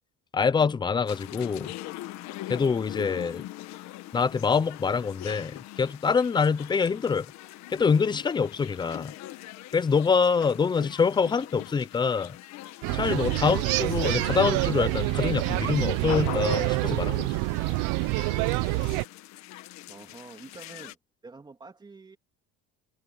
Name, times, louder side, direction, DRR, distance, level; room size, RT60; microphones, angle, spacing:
voice 1, 0.3-1.7 2.5-3.4 4.1-7.3 7.7-9.1 9.7-12.4 12.9-17.3, left 5 dB, 15° left, 0.5 m, -25 dB
sound 1, 1.1-20.9, left 16 dB, 60° left, 1.6 m, -42 dB
sound 2, 12.8-19.0, right 23 dB, 80° right, 0.8 m, -27 dB
voice 2, 19.9-21.0 21.2-22.2, right 3 dB, 15° right, 3.0 m, -47 dB
cardioid pair, 160°, 31 cm